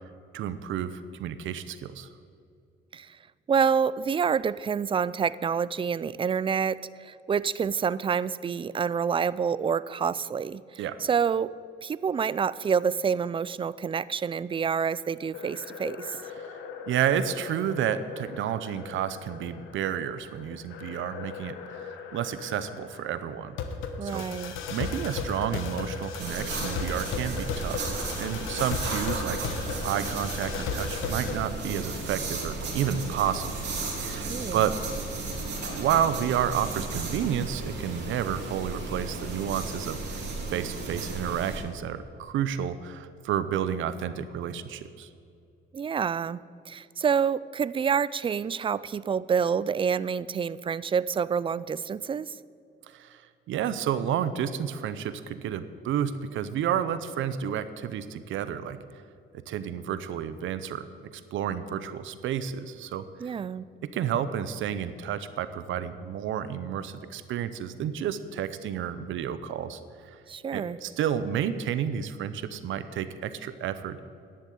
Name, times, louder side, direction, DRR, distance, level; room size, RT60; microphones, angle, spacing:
voice 1, 0.3-2.1 10.8-11.0 16.4-16.5 16.9-23.6 24.0-24.2 24.7-27.8 28.2-33.5 33.9-34.8 35.7-40.2 40.5-45.1 52.9-53.2 53.5-58.8 59.5-60.9 61.1-63.3 63.8-70.2 70.5-74.1, right 9 dB, 80° right, 13 dB, 0.7 m, -31 dB
voice 2, 3.5-11.5 11.8-16.2 24.0-24.5 34.1-34.6 45.7-52.3 63.2-63.7 70.3-70.8, right 6 dB, 25° right, 19 dB, 0.3 m, -28 dB
sound 1, 15.3-31.4, left 5 dB, 90° left, 1.1 m, -36 dB
sound 2, 26.2-41.6, right 3 dB, 60° right, 3.3 m, -34 dB
10.5 x 7.5 x 9.4 m, 2.5 s
cardioid pair, 90°, 20 cm